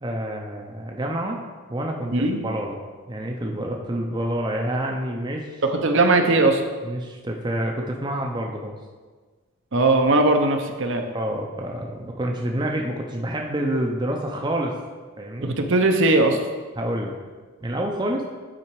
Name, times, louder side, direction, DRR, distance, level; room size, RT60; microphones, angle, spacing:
voice 1, 0.0-1.4 1.7-2.1 2.4-2.7 3.1-5.5 6.8-8.7 11.1-14.7 15.2-15.5 16.8-17.2 17.6-18.2, right 1 dB, 20° right, 1 dB, 0.6 m, -28 dB
voice 2, 5.7-6.6 9.7-11.0 15.4-16.4, right 2 dB, 60° right, 4 dB, 0.7 m, -19 dB
8.7 x 4.2 x 4.7 m, 1.4 s
head